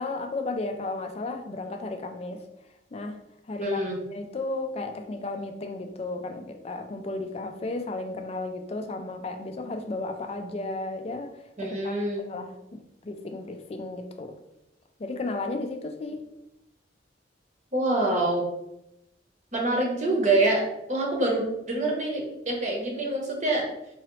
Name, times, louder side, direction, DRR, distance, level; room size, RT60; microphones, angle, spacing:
voice 1, 0.0-2.4 2.9-3.2 3.5-3.8 4.1-12.0 12.2-14.4 15.0-16.2, left 2 dB, 35° left, 6 dB, 0.3 m, -34 dB
voice 2, 3.6-4.0 11.6-12.2 17.7-18.5 19.5-23.7, right 2 dB, 40° right, -1 dB, 0.9 m, -26 dB
3.8 x 2.9 x 3.0 m, 0.86 s
head